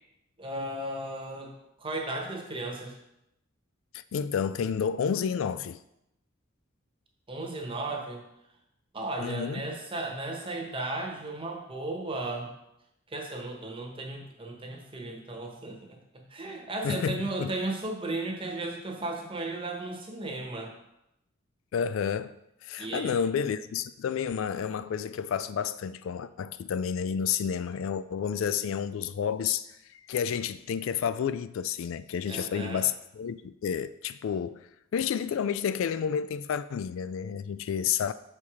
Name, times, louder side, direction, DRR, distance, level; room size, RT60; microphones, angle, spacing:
voice 1, 0.4-3.0 7.3-8.2 8.9-12.5 13.1-20.7 22.8-23.2 32.3-32.9, right 2 dB, 25° right, 1.1 m, -35 dB
voice 2, 3.9-5.8 9.2-9.7 16.8-17.5 21.7-22.4 22.6-34.7 34.9-38.1, left 7 dB, 65° left, 0.3 m, -30 dB
7.0 x 4.6 x 4.8 m
head